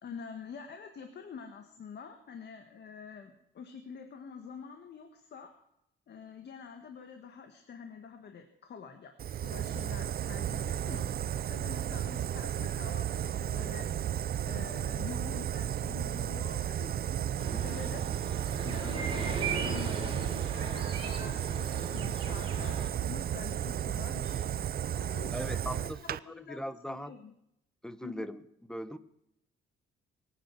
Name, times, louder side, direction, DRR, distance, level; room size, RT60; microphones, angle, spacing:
voice 1, 0.0-5.5 6.1-9.1 9.4-11.1 11.5-13.9 14.5-18.0 18.6-24.4 24.9-25.9 26.2-26.6 26.9-27.3 28.0-28.3, left 6 dB, 60° left, 6 dB, 1.7 m, -46 dB
Fire, 9.2-26.2, right 10 dB, 50° right, 0.5 m, -33 dB
sound 1, 17.4-22.9, right 4 dB, 25° right, 4.3 m, -38 dB
voice 2, 25.3-27.2 27.8-28.4 28.7-29.0, equal, 5° left, 13 dB, 1.1 m, -40 dB
23.0 x 9.2 x 6.1 m, 0.80 s
cardioid pair, 90°, 20 cm